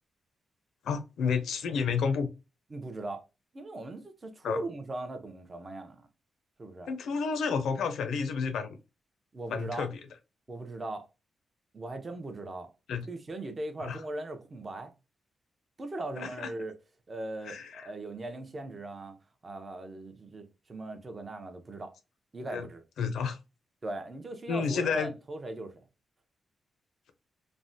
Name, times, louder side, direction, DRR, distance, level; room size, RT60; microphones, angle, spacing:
voice 1, 0.8-2.3 4.4-4.6 6.9-8.8 9.5-9.9 12.9-13.1 13.8-14.0 16.2-16.5 17.5-17.9 22.5-22.7 23.0-23.4 24.5-25.1, left 5 dB, 85° left, 0.5 m, -30 dB
voice 2, 2.7-3.2 3.5-6.1 6.6-6.9 9.3-9.9 10.5-11.1 11.7-12.7 13.0-14.9 15.8-16.7 17.1-19.2 19.4-21.9 22.3-22.8 23.8-25.8, right 2 dB, 25° right, 0.5 m, -39 dB
3.3 x 2.1 x 2.6 m
wide cardioid pair, 135°, 0 cm